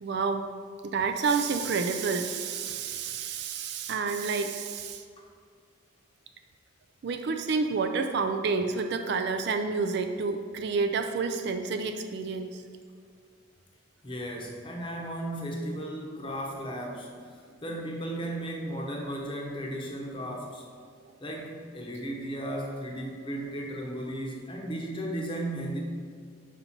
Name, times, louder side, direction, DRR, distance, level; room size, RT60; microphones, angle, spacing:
voice 1, 0.0-0.4 0.8-5.0 7.0-12.6, right 4 dB, 55° right, 6 dB, 0.3 m, -29 dB
voice 2, 14.0-20.6 21.2-25.8, right 1 dB, 25° left, -1 dB, 0.9 m, -35 dB
5.3 x 4.2 x 5.8 m, 2.1 s
head